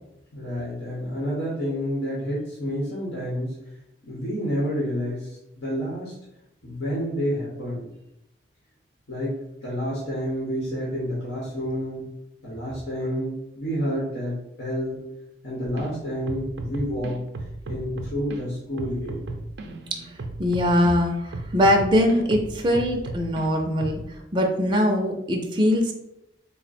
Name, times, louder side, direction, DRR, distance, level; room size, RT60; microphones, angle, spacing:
voice 1, 0.3-3.6 4.0-6.1 6.6-7.9 9.1-9.4 9.6-12.1 12.4-15.0 15.4-17.2 17.7-19.2, equal, 85° left, -6 dB, 1.0 m, -29 dB
sound 1, 15.8-15.9 16.3-18.4 18.8-20.9 21.3-23.5 23.8-24.0, right 2 dB, 85° right, 0.4 m, -35 dB
voice 2, 20.4-24.0 24.3-25.9, left 1 dB, 25° right, 2 dB, 0.4 m, -22 dB
3.6 x 2.1 x 4.1 m, 0.85 s
head